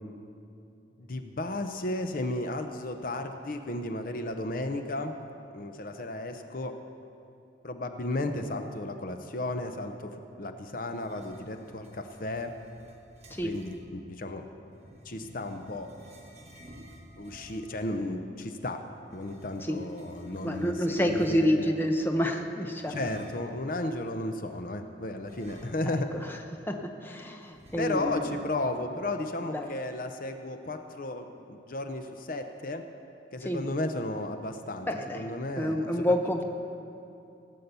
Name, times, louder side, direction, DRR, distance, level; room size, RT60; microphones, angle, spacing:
voice 1, 1.0-5.2 5.5-6.8 7.6-12.5 13.4-14.4 15.0-15.9 17.2-18.8 19.1-21.8 22.9-26.1 27.8-32.8 33.3-34.9 35.1-36.1, left 2 dB, 50° left, 6 dB, 0.7 m, -34 dB
sound 1, 10.9-13.8 14.7-17.8 19.0-21.7 22.7-23.6 25.2-26.1 26.4-26.5 27.5-28.4, right 1 dB, 35° right, 1.4 m, -51 dB
voice 2, 20.4-23.1 26.7-26.8 27.0-28.3 29.5-29.7 33.4-33.6 34.9-35.3 35.6-36.4, equal, 10° left, 3 dB, 0.8 m, -28 dB
17.5 x 8.4 x 6.8 m, 2.6 s
head